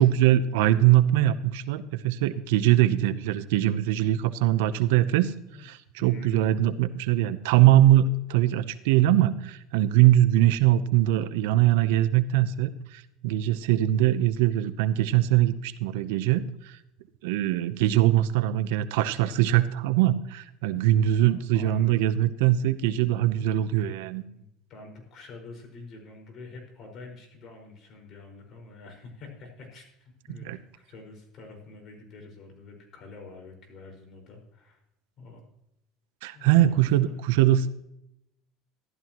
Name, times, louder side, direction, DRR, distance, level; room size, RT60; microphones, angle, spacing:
voice 1, 0.0-5.3 5.6-16.8 17.2-24.2 30.4-30.6 36.2-37.7, right 13 dB, 85° right, 13 dB, 0.7 m, -22 dB
voice 2, 6.0-6.6 21.2-22.0 24.2-34.8 35.2-35.5 36.3-37.1, left 3 dB, 45° left, 2 dB, 5.0 m, -47 dB
14.5 x 12.5 x 3.0 m, 0.80 s
supercardioid pair, 120°, 0 cm